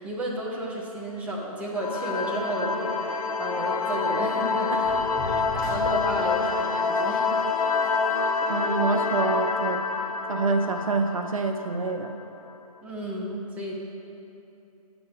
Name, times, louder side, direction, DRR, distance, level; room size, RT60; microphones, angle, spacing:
voice 1, 0.0-5.0 5.5-7.3 12.8-13.7, right 1 dB, 5° right, -4 dB, 0.8 m, -32 dB
sound 1, 1.8-12.1, left 4 dB, 70° left, 0.6 m, -27 dB
sound 2, 4.8-6.5, left 2 dB, 30° left, 0.9 m, -36 dB
voice 2, 8.5-9.9 10.3-12.1, right 3 dB, 65° right, 6 dB, 0.6 m, -26 dB
8.3 x 6.1 x 4.9 m, 2.9 s
figure-of-eight pair, 130°, 19 cm